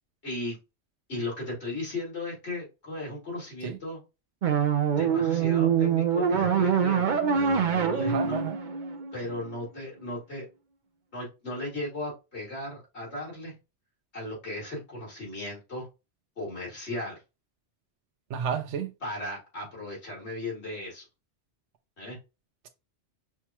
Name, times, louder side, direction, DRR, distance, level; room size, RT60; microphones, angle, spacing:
voice 1, 0.2-0.6 1.1-4.0 5.0-8.4 9.1-10.5 11.1-13.5 14.1-15.9 16.4-17.2 19.0-21.0 22.0-22.2, left 1 dB, 70° left, 2.7 m, -36 dB
sound 1, 4.4-9.5, right 7 dB, 50° right, 0.7 m, -25 dB
voice 2, 8.0-8.6 18.3-18.9, right 7 dB, 90° right, 0.9 m, -31 dB
5.8 x 2.1 x 2.9 m
omnidirectional pair, 1.1 m